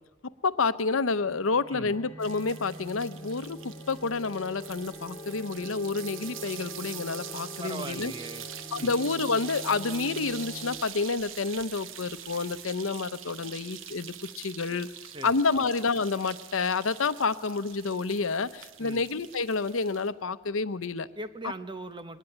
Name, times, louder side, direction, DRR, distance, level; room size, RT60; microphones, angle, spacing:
voice 1, 0.4-3.6 3.9-8.1 8.7-14.9 15.2-21.1, left 4 dB, 85° left, 13 dB, 0.8 m, -29 dB
sound 1, 1.2-10.8, equal, 20° left, 2.1 m, -44 dB
sound 2, 2.2-20.1, right 10 dB, 70° right, 1.0 m, -44 dB
voice 2, 7.6-8.4 8.8-8.9 15.1-15.7 18.8-19.0 21.2-22.2, right 2 dB, 25° right, 11 dB, 0.9 m, -40 dB
22.0 x 19.0 x 9.9 m, 1.2 s
head